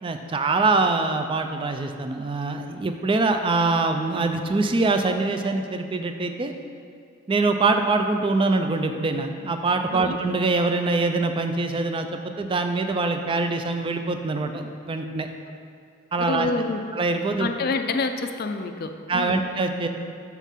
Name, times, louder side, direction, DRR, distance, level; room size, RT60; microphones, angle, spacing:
voice 1, 0.0-6.5 7.3-15.3 16.1-16.5 16.9-17.5 19.1-19.9, right 3 dB, 25° right, 6 dB, 0.3 m, -24 dB
voice 2, 16.3-16.8 17.4-19.4, left 3 dB, 45° left, 7 dB, 0.4 m, -27 dB
7.2 x 5.8 x 3.6 m, 2.3 s
head